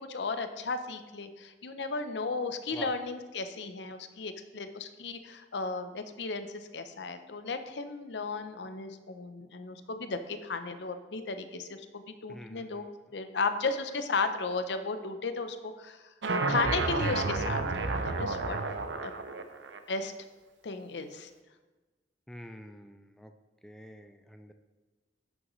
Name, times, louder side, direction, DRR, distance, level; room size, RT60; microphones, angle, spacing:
voice 1, 0.0-12.9 13.1-16.0 16.5-18.6 19.0-19.1 19.9-20.1 20.6-21.3, left 4 dB, 70° left, 9 dB, 0.6 m, -35 dB
voice 2, 12.3-12.9 22.3-23.3 23.6-24.5, equal, 5° left, 6 dB, 0.3 m, -47 dB
sound 1, 16.2-19.8, right 3 dB, 85° right, 0.7 m, -30 dB
11.0 x 6.3 x 3.1 m, 1.2 s
head